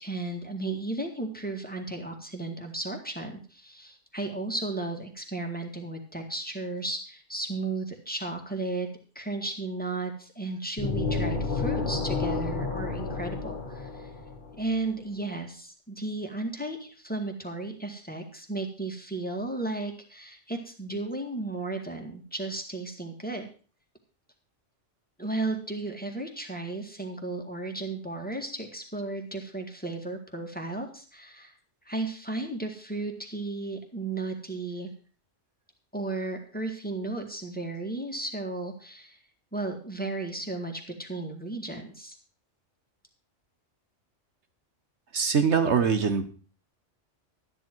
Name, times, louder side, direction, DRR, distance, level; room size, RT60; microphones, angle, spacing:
voice 1, 0.0-8.9 9.2-14.1 14.6-23.5 25.2-31.6 31.9-34.9 35.9-39.2 39.5-42.2, right 2 dB, 5° left, 3 dB, 1.8 m, -34 dB
sound 1, 10.8-14.6, left 4 dB, 45° left, 1.3 m, -30 dB
voice 2, 45.1-46.3, right 6 dB, 65° right, 7 dB, 1.4 m, -23 dB
12.5 x 10.0 x 4.6 m, 0.38 s
omnidirectional pair, 1.3 m